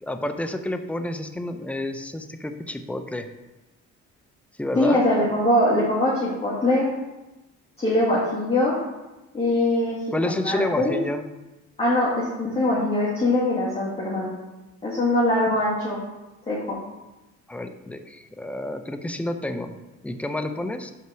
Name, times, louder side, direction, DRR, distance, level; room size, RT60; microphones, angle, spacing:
voice 1, 0.0-3.3 4.6-5.0 10.1-11.2 17.5-19.8 20.0-20.9, left 1 dB, 5° left, 7 dB, 0.6 m, -29 dB
voice 2, 4.8-6.9 7.8-8.7 9.3-10.0 10.2-10.9 11.8-14.3 14.8-16.0 16.5-16.8, left 1 dB, 20° left, -8 dB, 2.1 m, -22 dB
5.8 x 4.5 x 6.1 m, 1.0 s
cardioid pair, 90°, 30 cm